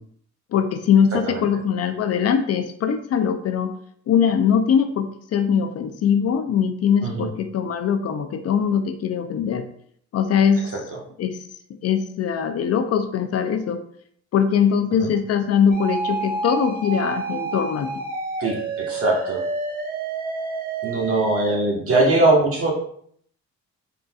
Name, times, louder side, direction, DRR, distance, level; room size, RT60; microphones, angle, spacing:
voice 1, 0.5-3.7 4.1-9.6 10.1-10.7 11.2-11.4 11.8-13.8 14.3-18.0, left 7 dB, 55° left, 8 dB, 0.5 m, -21 dB
sound 1, 15.7-21.5, right 3 dB, 30° right, 1.0 m, -29 dB
voice 2, 18.9-19.4 20.8-22.7, right 2 dB, 50° right, -1 dB, 1.4 m, -20 dB
4.0 x 3.8 x 2.3 m, 0.63 s
cardioid pair, 90°, 30 cm